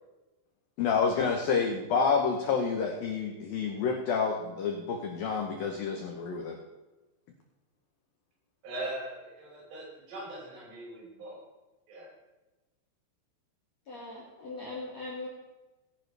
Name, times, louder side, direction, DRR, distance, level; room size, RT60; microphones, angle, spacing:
voice 1, 0.8-6.6, left 5 dB, 80° left, 2 dB, 2.0 m, -29 dB
voice 2, 8.6-11.4 11.9-12.1, right 1 dB, 65° right, -6 dB, 8.2 m, -40 dB
voice 3, 13.9-15.3, left 2 dB, 45° left, -5 dB, 2.3 m, -40 dB
19.5 x 10.5 x 3.4 m, 1.1 s
omnidirectional pair, 5.8 m